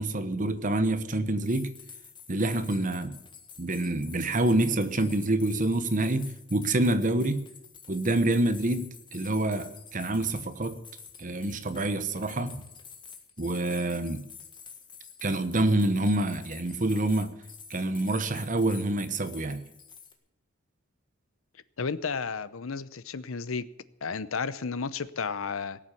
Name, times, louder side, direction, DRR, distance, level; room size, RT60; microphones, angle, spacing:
voice 1, 0.0-1.7 2.3-3.2 3.6-7.4 7.9-10.8 11.2-12.6 13.4-14.2 15.2-17.3 17.7-19.6, right 2 dB, 40° right, 1.1 m, -27 dB
sound 1, 1.4-20.1, left 6 dB, 25° left, 1.6 m, -49 dB
voice 2, 21.8-23.7 24.0-25.8, left 5 dB, 85° left, 0.8 m, -32 dB
17.5 x 7.5 x 8.4 m
head